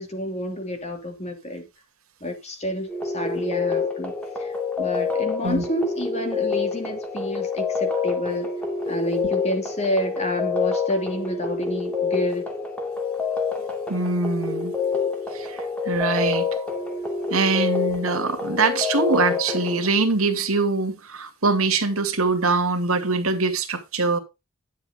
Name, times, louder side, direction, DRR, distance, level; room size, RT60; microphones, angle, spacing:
voice 1, 0.0-1.6 2.2-4.1 4.4-8.5 8.9-12.5, equal, 30° left, 2.8 m, -29 dB
sound 1, 2.9-19.9, left 5 dB, 5° left, 2.3 m, -27 dB
voice 2, 13.9-14.7 15.3-15.5 15.9-16.5 17.3-24.2, right 3 dB, 90° right, 2.3 m, -23 dB
11.0 x 7.2 x 3.7 m
head